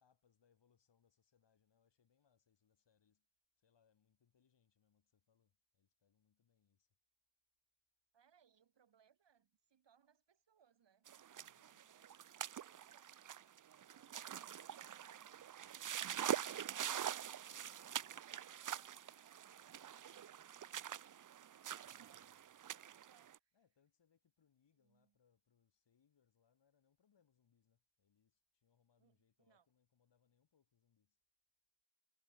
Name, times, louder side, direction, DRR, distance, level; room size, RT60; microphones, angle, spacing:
voice 1, 0.0-3.3 3.6-7.0 11.3-11.8 16.5-16.9 21.8-22.2 23.5-31.2, left 7 dB, 70° left, 4.7 m, -79 dB
voice 2, 8.1-11.1 11.3-22.5 22.7-23.6 24.7-25.2 29.0-29.7, right 7 dB, 75° right, 3.3 m, -76 dB
sound 1, 11.1-23.4, right 10 dB, 45° right, 0.6 m, -45 dB
wide cardioid pair, 90°, 43 cm